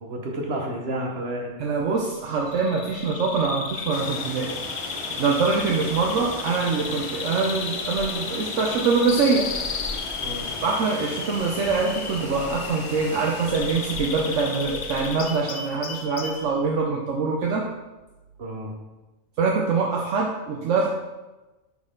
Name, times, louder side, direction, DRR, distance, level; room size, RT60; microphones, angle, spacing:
voice 1, 0.0-1.5 10.2-10.5 18.4-18.7, right 1 dB, 55° right, 0 dB, 1.5 m, -30 dB
voice 2, 1.6-4.6 4.8-9.5 10.6-17.7 19.4-20.9, right 4 dB, 75° right, -1 dB, 1.1 m, -24 dB
Bird vocalization bird call bird song, 2.5-16.5, left 5 dB, 50° left, 0.5 m, -34 dB
sound 1, 3.9-15.6, left 1 dB, 30° left, 0.9 m, -37 dB
9.5 x 4.2 x 3.8 m, 1.1 s
omnidirectional pair, 1.3 m